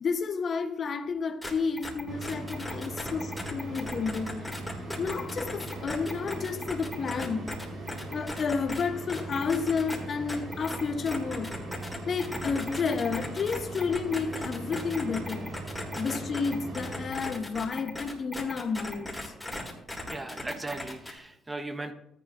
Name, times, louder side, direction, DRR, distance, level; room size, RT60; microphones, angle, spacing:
voice 1, 0.0-4.4 5.0-7.5 8.1-11.5 12.1-15.5 15.9-19.3, left 5 dB, 50° left, 1.0 m, -31 dB
sound 1, 1.4-1.5 1.8-8.8 9.1-10.0 10.3-21.2, left 1 dB, 5° left, 3.3 m, -37 dB
sound 2, 2.1-17.1, right 2 dB, 65° right, 4.3 m, -40 dB
voice 2, 20.1-21.9, right 2 dB, 20° right, 1.2 m, -37 dB
13.5 x 10.5 x 2.6 m
supercardioid pair, 55°, 0 cm